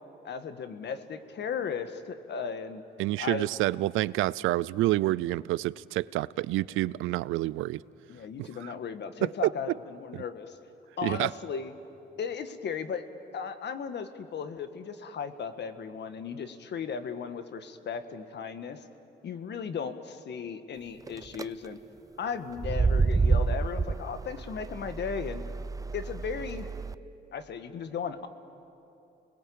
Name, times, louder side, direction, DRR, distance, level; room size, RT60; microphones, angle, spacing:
voice 1, 0.2-2.8 3.2-3.5 8.1-10.6 11.0-11.7 12.2-13.0 13.3-18.8 19.2-21.8 22.2-25.4 25.9-26.7 27.3-28.3, left 6 dB, 60° left, 1.6 m, -36 dB
voice 2, 3.0-7.8 8.4-8.7 10.1-10.2 11.0-11.3, right 17 dB, 90° right, 0.5 m, -28 dB
sound 1, 21.1-21.4 22.5-26.9, right 4 dB, 15° right, 0.5 m, -28 dB
29.5 x 20.5 x 8.7 m
cardioid pair, 90°, 20 cm